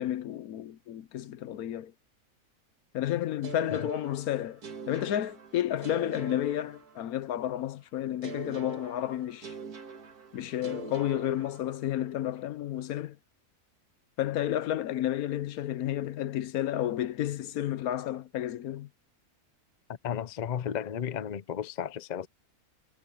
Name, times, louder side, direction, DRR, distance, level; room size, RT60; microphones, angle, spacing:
voice 1, 0.0-1.9 2.9-4.6 4.9-9.5 10.3-13.2 14.2-18.9, left 12 dB, 75° left, 1.2 m, -31 dB
sound 1, 3.4-7.4 8.2-12.1, right 5 dB, 85° right, 2.1 m, -44 dB
voice 2, 20.0-22.3, left 8 dB, 40° left, 0.6 m, -34 dB
omnidirectional pair, 1.6 m